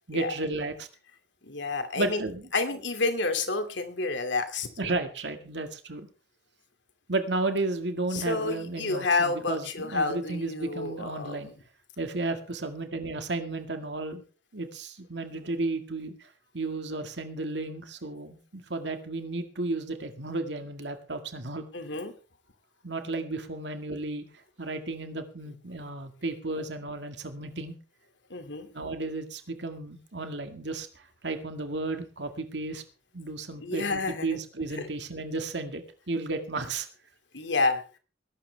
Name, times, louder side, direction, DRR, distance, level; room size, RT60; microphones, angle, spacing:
voice 1, 0.1-0.9 2.0-2.4 4.8-6.1 7.1-11.5 12.0-14.2 14.5-16.3 16.5-21.7 22.8-24.3 24.6-27.7 28.7-32.8 33.1-35.8 36.1-36.9, right 2 dB, 75° right, 7 dB, 1.9 m, -33 dB
voice 2, 1.4-2.2 2.5-4.7 8.1-11.5 21.7-22.1 28.3-28.7 33.6-34.4 34.8-34.9 37.3-37.8, left 3 dB, 85° left, 8 dB, 2.5 m, -29 dB
21.0 x 12.0 x 3.4 m, 0.34 s
head